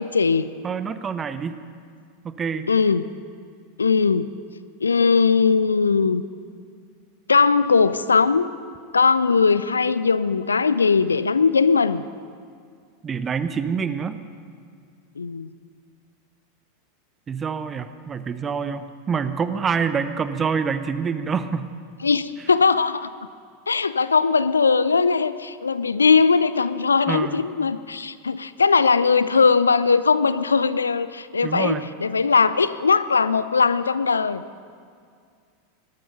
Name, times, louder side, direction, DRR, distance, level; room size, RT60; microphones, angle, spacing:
voice 1, 0.0-0.5 2.7-3.1 3.8-4.3 4.8-6.2 7.3-8.5 8.9-12.0 15.2-15.5 22.0-23.1 23.7-34.4, left 5 dB, 75° left, 15 dB, 0.5 m, -19 dB
voice 2, 0.6-1.5 2.2-2.7 13.0-14.2 17.3-21.7 27.1-27.4 31.4-31.8, right 6 dB, 20° right, 11 dB, 0.8 m, -26 dB
20.5 x 13.0 x 5.4 m, 2.2 s
figure-of-eight pair, 85°, 0 cm